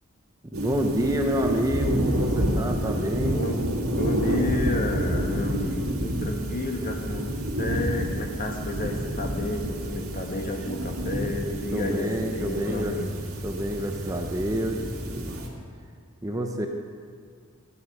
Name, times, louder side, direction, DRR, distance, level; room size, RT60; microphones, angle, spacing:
voice 1, 0.4-3.5 11.7-13.0 13.4-15.4 16.2-16.7, equal, 15° right, 3 dB, 0.8 m, -28 dB
sound 1, 0.5-15.5, equal, 90° right, 2.4 m, -29 dB
voice 2, 3.3-3.6 3.9-7.3 7.6-13.1, left 1 dB, 40° left, 2 dB, 1.5 m, -31 dB
13.5 x 10.0 x 5.6 m, 2.1 s
head